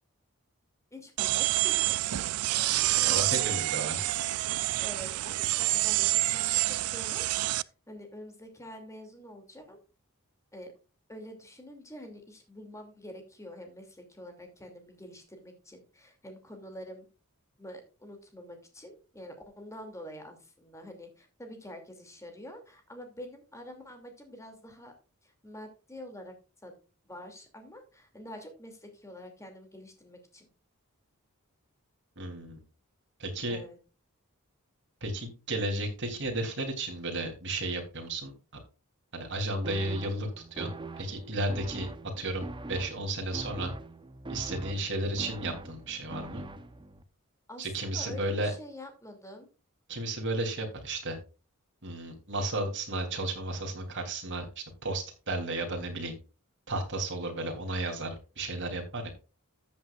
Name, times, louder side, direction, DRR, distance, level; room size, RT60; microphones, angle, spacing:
voice 1, 0.9-1.9 3.0-3.6 4.8-9.8 10.5-10.7 11.1-17.1 17.6-24.9 25.2-26.3 26.6-26.8 27.0-30.5 33.5-33.8 47.5-47.7 47.9-49.5, equal, 15° left, 4 dB, 2.6 m, -46 dB
sound 1, 1.2-7.6, right 17 dB, 80° right, 0.4 m, -28 dB
voice 2, 2.9-4.0 32.2-32.6 33.2-33.6 35.0-38.3 39.1-41.9 42.2-43.7 44.3-46.4 47.6-48.5 49.9-51.2 51.8-56.1 56.7-59.1, right 2 dB, 55° right, 2 dB, 3.2 m, -33 dB
sound 2, 39.6-47.0, right 2 dB, 20° right, 0.8 m, -42 dB
14.0 x 8.0 x 2.4 m, 0.33 s
head